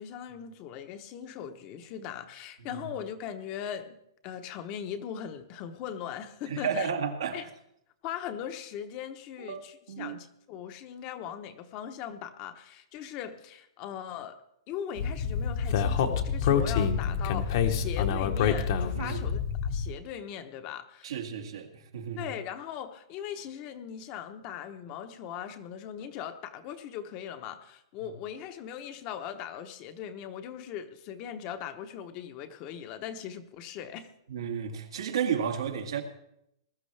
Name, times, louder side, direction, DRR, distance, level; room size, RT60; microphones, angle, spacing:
voice 1, 0.0-4.0 4.2-6.9 7.3-7.5 8.0-14.4 14.7-21.2 22.2-34.1, left 9 dB, 30° left, 0.9 m, -39 dB
voice 2, 6.5-7.5 9.4-10.2 18.9-19.3 21.0-22.3 34.3-36.0, right 7 dB, 85° right, 2.0 m, -33 dB
Speech, 15.0-19.9, left 7 dB, 50° left, 1.1 m, -27 dB
20.5 x 13.0 x 3.3 m
hypercardioid pair, 165°, 3 cm